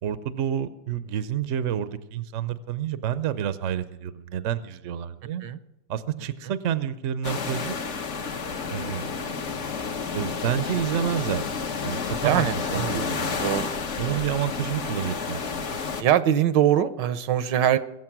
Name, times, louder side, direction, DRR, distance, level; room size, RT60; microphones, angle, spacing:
voice 1, 0.0-5.4 5.9-7.9 8.7-9.2 10.1-11.4 11.8-12.4 12.7-13.3 14.0-15.7, right 9 dB, 55° right, 13 dB, 0.9 m, -29 dB
sound 1, 7.2-16.0, left 5 dB, 45° left, 1.2 m, -30 dB
voice 2, 12.2-13.1 13.4-13.7 14.0-14.2 16.0-17.8, right 10 dB, 80° right, 13 dB, 1.4 m, -23 dB
22.0 x 8.2 x 6.0 m, 0.88 s
omnidirectional pair, 1.9 m